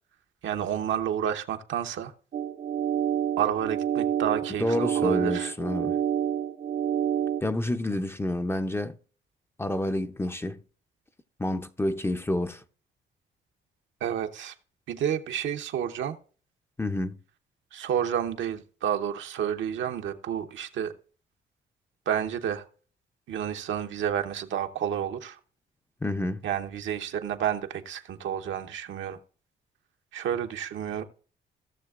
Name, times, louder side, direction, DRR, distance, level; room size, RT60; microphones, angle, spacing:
voice 1, 0.4-2.1 3.4-5.5 14.0-14.5 14.9-16.2 17.7-20.9 22.1-22.6 23.3-25.4 26.4-29.2 30.1-31.0, right 9 dB, 75° right, 0.9 m, -30 dB
sound 1, 2.3-7.4, right 9 dB, 50° right, 0.6 m, -28 dB
voice 2, 4.6-6.0 7.4-9.0 9.6-10.6 11.4-12.6 16.8-17.2 26.0-26.4, left 1 dB, 10° left, 0.5 m, -29 dB
16.5 x 6.5 x 2.4 m
cardioid pair, 90°, 20 cm